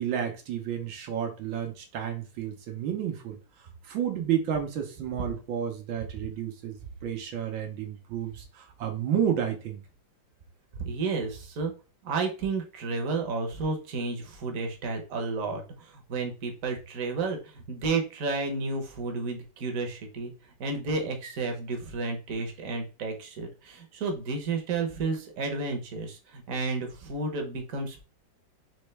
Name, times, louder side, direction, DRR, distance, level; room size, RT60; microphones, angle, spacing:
voice 1, 0.0-3.4 3.8-9.8, right 9 dB, 85° right, 3 dB, 1.6 m, -31 dB
voice 2, 10.8-11.7 12.0-20.3 20.6-28.1, right 3 dB, 50° right, 3 dB, 1.2 m, -32 dB
4.4 x 3.1 x 3.2 m, 0.34 s
omnidirectional pair, 2.1 m